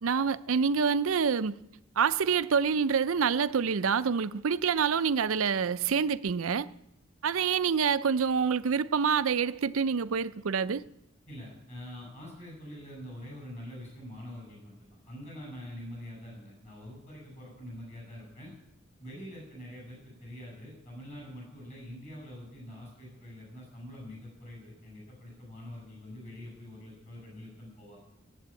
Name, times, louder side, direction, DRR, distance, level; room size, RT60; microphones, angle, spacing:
voice 1, 0.0-1.6 2.0-6.7 7.2-10.8, right 6 dB, 80° right, 0.5 m, -27 dB
voice 2, 11.3-18.5 19.0-28.0, left 1 dB, 35° left, 6.7 m, -45 dB
16.0 x 8.5 x 8.4 m
head